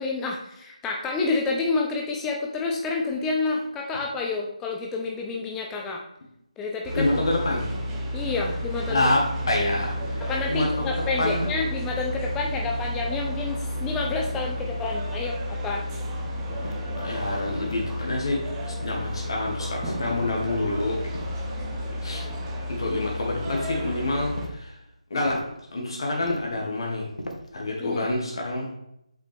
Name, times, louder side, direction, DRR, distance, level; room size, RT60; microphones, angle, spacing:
voice 1, 0.0-6.0 6.6-7.2 8.1-9.0 10.3-15.8 27.8-28.1, left 3 dB, 5° left, 0 dB, 0.4 m, -29 dB
sound 1, 6.8-24.4, equal, 10° right, 0.9 m, -31 dB
voice 2, 6.9-7.9 8.9-11.6 17.0-21.0 22.0-22.3 22.7-24.8 25.1-25.4 25.7-27.1 27.5-28.7, left 2 dB, 40° left, -1 dB, 1.5 m, -27 dB
sound 2, 16.6-17.0 17.6-18.3 18.8-19.3 19.9-20.5 21.1-21.8 23.5-23.8 24.4-24.6 25.2-25.6 26.2-26.6 27.2-27.6, equal, 80° left, 1.3 m, -38 dB
8.0 x 5.5 x 3.5 m, 0.80 s
figure-of-eight pair, 155°, 4 cm